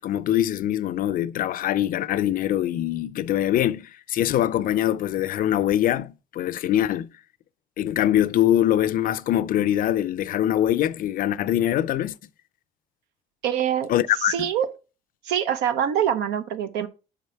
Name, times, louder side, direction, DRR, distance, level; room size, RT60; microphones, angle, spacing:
voice 1, 0.0-7.1 7.8-12.2 13.9-14.5, left 12 dB, 55° left, 0.4 m, -23 dB
voice 2, 13.4-13.9 14.3-14.7 15.2-16.9, right 9 dB, 90° right, 0.7 m, -24 dB
5.0 x 4.6 x 5.7 m
cardioid pair, 110°, 17 cm